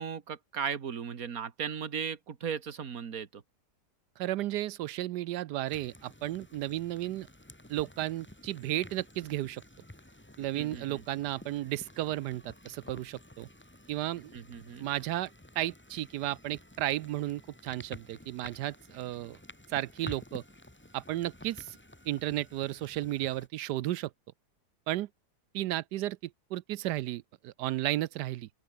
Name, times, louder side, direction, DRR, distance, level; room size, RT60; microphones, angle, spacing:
voice 1, 0.0-3.4 10.5-11.0 14.3-14.9, right 7 dB, 55° right, 2.0 m, -37 dB
voice 2, 4.2-7.3 7.7-9.6 10.4-13.5 13.9-14.4 14.8-15.3 15.6-19.4 19.7-20.4 20.9-21.8 22.1-24.1 24.9-25.1 25.5-28.5, right 14 dB, 80° right, 1.2 m, -33 dB
sound 1, 5.7-23.5, left 1 dB, 5° left, 1.6 m, -51 dB
open air
omnidirectional pair, 1.8 m